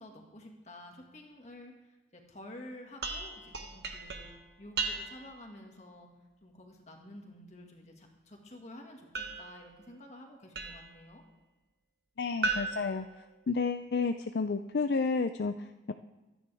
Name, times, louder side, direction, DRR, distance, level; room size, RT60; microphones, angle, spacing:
voice 1, 0.0-4.3 4.6-6.1 6.4-11.2, left 1 dB, 35° left, 1 dB, 2.0 m, -50 dB
sound 1, 3.0-5.4 9.1-11.0 12.4-13.9, right 3 dB, 60° right, 1.4 m, -38 dB
voice 2, 12.2-13.0 13.5-15.9, left 4 dB, 60° left, 9 dB, 0.4 m, -31 dB
24.5 x 10.0 x 3.5 m, 1.1 s
head